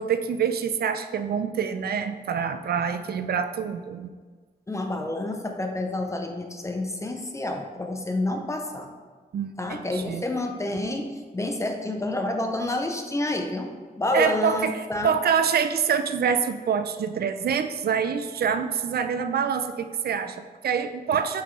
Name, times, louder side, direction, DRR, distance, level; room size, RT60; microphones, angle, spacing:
voice 1, 0.0-4.1 9.3-10.2 14.1-21.4, right 7 dB, 85° right, 9 dB, 0.5 m, -26 dB
voice 2, 4.7-8.9 9.6-11.1 11.3-15.1, left 1 dB, 20° left, 3 dB, 0.5 m, -29 dB
7.2 x 6.0 x 3.2 m, 1.5 s
wide cardioid pair, 175°, 16 cm